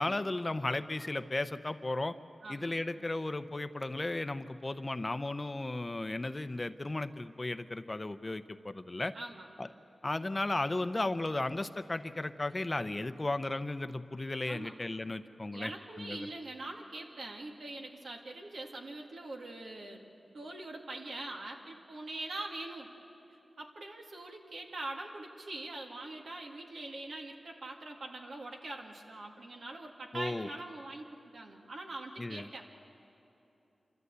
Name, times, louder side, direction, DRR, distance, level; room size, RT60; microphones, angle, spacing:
voice 1, 0.0-2.1 2.5-9.1 9.6-9.7 10.0-15.7 16.0-16.3 30.1-30.5 32.2-32.5, left 2 dB, 30° left, 11 dB, 0.7 m, -35 dB
voice 2, 2.4-2.7 9.1-9.5 14.5-14.7 15.5-20.0 20.3-22.9 23.6-32.7, right 2 dB, 80° right, 1 dB, 2.1 m, -43 dB
27.0 x 14.0 x 8.2 m, 2.8 s
cardioid pair, 60°, 0 cm